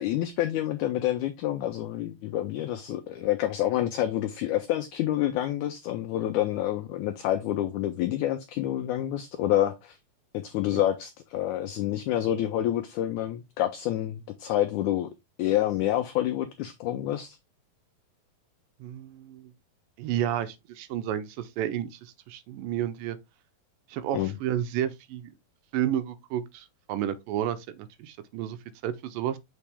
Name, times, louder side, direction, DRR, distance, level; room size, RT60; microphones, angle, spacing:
voice 1, 0.0-10.0 10.3-15.1 15.4-17.4 24.1-24.3, left 12 dB, 90° left, 1.7 m, -28 dB
voice 2, 18.8-19.5 20.0-23.2 23.9-25.3 25.7-28.6 28.8-29.4, right 11 dB, 80° right, 2.2 m, -31 dB
7.2 x 4.2 x 3.4 m
omnidirectional pair, 4.1 m